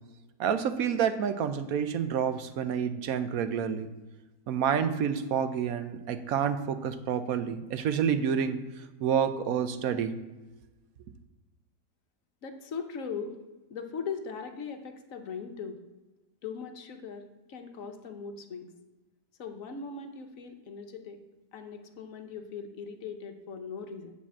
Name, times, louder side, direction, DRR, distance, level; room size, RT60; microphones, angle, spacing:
voice 1, 0.4-3.9 4.5-8.6 9.0-10.1, right 8 dB, 65° right, 11 dB, 1.0 m, -28 dB
voice 2, 12.4-13.4 13.7-15.8 16.4-18.7 19.4-21.2 21.5-24.1, left 5 dB, 60° left, 6 dB, 1.2 m, -39 dB
9.8 x 4.3 x 7.2 m, 1.1 s
omnidirectional pair, 1.7 m